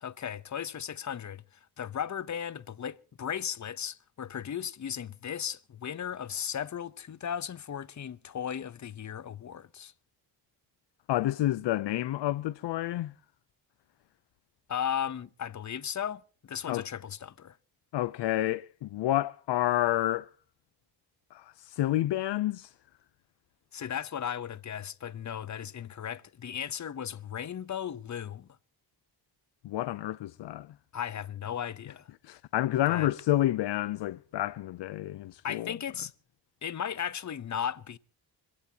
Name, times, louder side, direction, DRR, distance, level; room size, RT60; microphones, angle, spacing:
voice 1, 0.0-1.4 1.8-9.9 14.7-17.6 23.7-28.5 30.9-32.1 32.9-33.1 35.4-36.1 36.6-38.0, left 8 dB, 45° left, 0.8 m, -36 dB
voice 2, 11.1-13.1 16.7-16.8 17.9-20.3 21.3-22.7 29.6-30.7 32.2-35.8, left 14 dB, 85° left, 0.6 m, -29 dB
25.5 x 16.0 x 2.9 m
cardioid pair, 105°, 41 cm